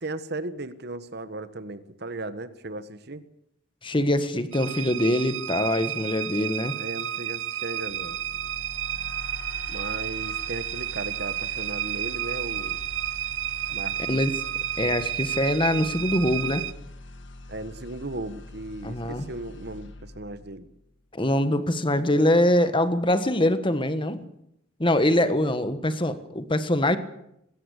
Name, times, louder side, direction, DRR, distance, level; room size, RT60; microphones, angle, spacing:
voice 1, 0.0-3.2 6.8-8.2 9.7-12.8 13.7-14.3 17.5-20.7, right 2 dB, 55° right, 13 dB, 1.4 m, -36 dB
voice 2, 3.8-6.8 14.0-14.3 14.8-16.6 18.8-19.3 21.1-24.3 24.8-27.0, left 1 dB, 25° left, 11 dB, 1.5 m, -23 dB
sound 1, 4.5-16.7, right 12 dB, 80° right, 0.7 m, -31 dB
sound 2, 7.9-21.0, left 2 dB, 65° left, 1.9 m, -44 dB
20.5 x 17.5 x 8.3 m, 0.77 s
head